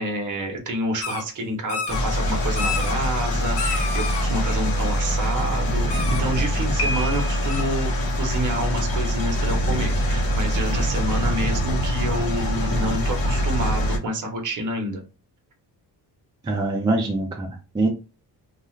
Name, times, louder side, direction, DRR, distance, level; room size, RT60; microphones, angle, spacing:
voice 1, 0.0-7.9 8.2-15.0, right 1 dB, 50° right, 2 dB, 0.9 m, -28 dB
sound 1, 1.0-1.2 1.7-2.0 2.6-3.0 3.6-4.3 5.9-6.2 7.5-7.6, left 5 dB, 80° left, 0.8 m, -29 dB
sound 2, 1.9-14.0, equal, 55° left, 1.0 m, -24 dB
Piano, 6.8-7.7, equal, 35° left, 0.6 m, -30 dB
voice 2, 16.4-17.9, right 2 dB, 10° right, 0 dB, 0.3 m, -24 dB
2.4 x 2.4 x 3.1 m, 0.30 s
wide cardioid pair, 165°, 41 cm